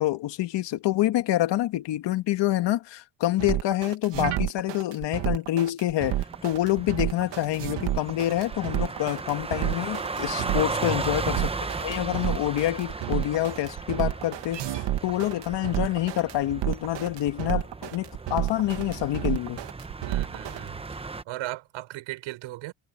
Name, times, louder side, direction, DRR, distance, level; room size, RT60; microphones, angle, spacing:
voice 1, 0.0-11.5 11.8-19.6, left 14 dB, 65° left, 1.6 m, -27 dB
sound 1, 3.4-20.6, right 13 dB, 65° right, 2.1 m, -30 dB
sound 2, 6.1-21.2, right 3 dB, 15° right, 0.8 m, -36 dB
voice 2, 20.1-22.7, right 17 dB, 85° right, 6.9 m, -38 dB
cardioid pair, 120°, 46 cm